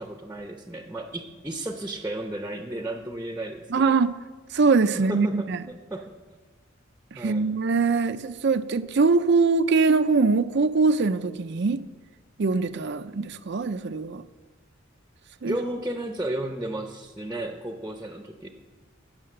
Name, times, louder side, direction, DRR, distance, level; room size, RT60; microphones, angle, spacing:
voice 1, 0.0-3.8 4.9-6.1 7.2-7.5 15.4-18.5, right 1 dB, 10° right, 0.8 m, -33 dB
voice 2, 3.7-4.2 4.5-5.6 7.1-11.8 12.4-14.2 15.4-15.6, right 4 dB, 55° right, 0.5 m, -22 dB
17.0 x 6.7 x 6.7 m
head